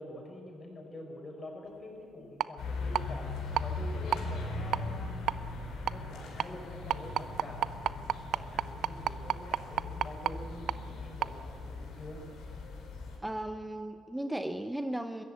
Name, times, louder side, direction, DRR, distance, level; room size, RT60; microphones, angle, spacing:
voice 1, 0.0-3.3 3.6-5.2 5.9-12.2, left 1 dB, 35° left, 1 dB, 5.5 m, -46 dB
sound 1, 2.4-2.5 2.9-3.0 3.6-3.7 4.1-4.2 4.7-4.8 5.3-5.4 5.9-6.0 6.4-6.5 6.9-10.3 10.7-10.8 11.2-11.3, right 11 dB, 75° right, 0.5 m, -29 dB
sound 2, 2.6-13.2, left 3 dB, 85° left, 4.4 m, -39 dB
voice 2, 13.2-15.2, right 1 dB, 5° right, 8 dB, 0.7 m, -36 dB
22.0 x 14.0 x 8.5 m, 2.5 s
cardioid pair, 90°, 0 cm